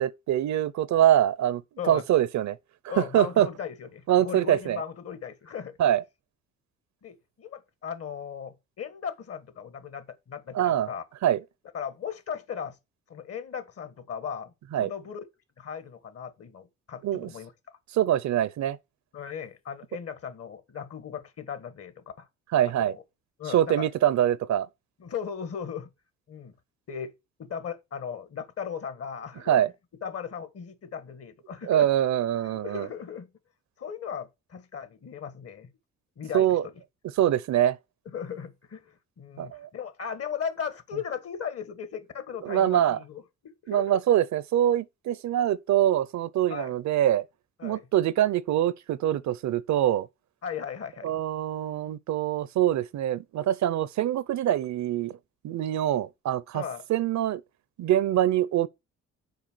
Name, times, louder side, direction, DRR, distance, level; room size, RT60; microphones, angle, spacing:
voice 1, 0.0-2.6 2.8-3.5 4.1-4.8 5.8-6.0 10.5-10.9 11.2-11.4 14.7-14.9 17.0-17.3 17.9-18.8 22.5-23.0 23.5-24.7 29.5-29.7 31.7-32.9 36.3-36.6 37.2-37.8 39.4-39.7 42.4-43.0 43.7-47.2 47.6-50.1 51.0-55.2 55.4-56.6 56.9-57.4 57.8-58.7, right 11 dB, 65° right, 0.7 m, -24 dB
voice 2, 2.9-5.8 7.0-11.0 11.7-12.8 13.1-14.5 14.8-15.2 15.6-17.5 19.1-22.3 22.8-23.0 23.4-23.9 25.0-25.9 26.3-26.5 26.9-27.1 27.4-29.6 30.0-31.9 32.4-33.3 33.8-35.7 36.2-36.5 38.1-44.0 46.5-46.7 47.6-47.9 50.4-51.2 56.5-56.8, left 7 dB, 50° left, 1.6 m, -37 dB
6.7 x 4.9 x 6.2 m
cardioid pair, 90°, 30 cm